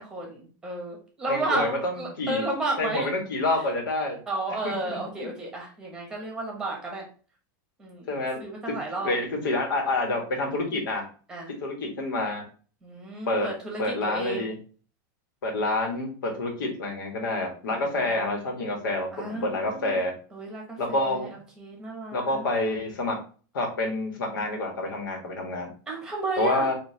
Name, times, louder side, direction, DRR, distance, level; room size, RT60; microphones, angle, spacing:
voice 1, 0.0-3.1 4.3-7.0 7.8-8.1 8.4-9.1 11.3-11.5 12.8-14.5 17.7-18.3 18.8-18.9 19.1-20.0 20.3-22.5 25.9-26.7, right 2 dB, 5° right, 0 dB, 1.0 m, -33 dB
voice 2, 1.3-2.5 2.8-4.2 4.6-5.3 8.1-8.4 9.0-11.0 11.6-12.4 13.3-13.5 13.8-14.5 15.4-20.1 20.8-21.4 22.1-23.2 23.5-25.7 26.4-26.7, left 2 dB, 85° left, 2 dB, 1.6 m, -28 dB
5.3 x 2.8 x 2.9 m, 0.39 s
supercardioid pair, 175°, 11 cm